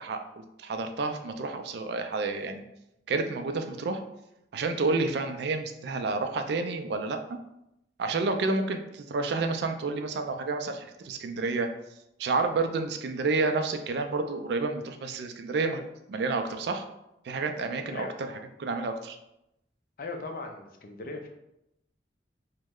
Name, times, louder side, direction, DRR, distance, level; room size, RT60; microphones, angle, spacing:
voice 1, 0.0-2.6 3.1-4.0 4.5-7.4 8.0-11.7 12.2-15.8 16.1-16.8 17.2-18.3 18.6-19.2, right 3 dB, 65° right, 6 dB, 0.4 m, -30 dB
voice 2, 20.0-21.3, left 3 dB, 50° left, 3 dB, 0.5 m, -38 dB
3.0 x 2.1 x 3.5 m, 0.84 s
head